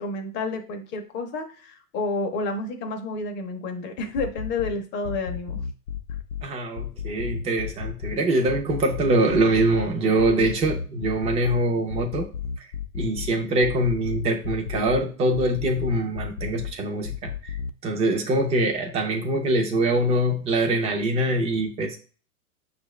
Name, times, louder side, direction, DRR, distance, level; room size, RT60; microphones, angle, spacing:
voice 1, 0.0-5.6, left 3 dB, 25° left, 5 dB, 0.7 m, -30 dB
sound 1, 4.0-4.7 5.0-6.4 6.8-8.1 8.5-9.9 10.2-11.6 11.9-13.3 13.6-15.0 15.3-16.7 17.0-17.7, left 8 dB, 80° left, 0.6 m, -32 dB
voice 2, 6.4-12.3 12.9-17.6 17.8-22.0, right 1 dB, 15° right, 3 dB, 0.5 m, -23 dB
5.9 x 2.5 x 3.1 m, 0.39 s
hypercardioid pair, 130°, 46 cm